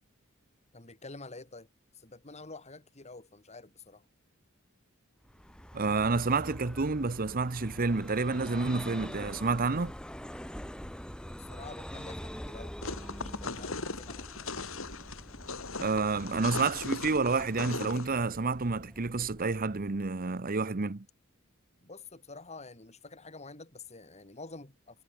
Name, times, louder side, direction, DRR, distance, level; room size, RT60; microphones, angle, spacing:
voice 1, 0.7-1.7 1.9-4.0 11.2-12.7 13.2-14.3 21.8-25.0, left 3 dB, 30° left, 2.5 m, -48 dB
Vehicle, 5.2-20.7, equal, 5° left, 1.6 m, -45 dB
voice 2, 5.7-9.9 15.8-21.0, right 4 dB, 45° right, 0.9 m, -29 dB
sound 1, 12.8-18.1, left 3 dB, 70° left, 3.3 m, -38 dB
head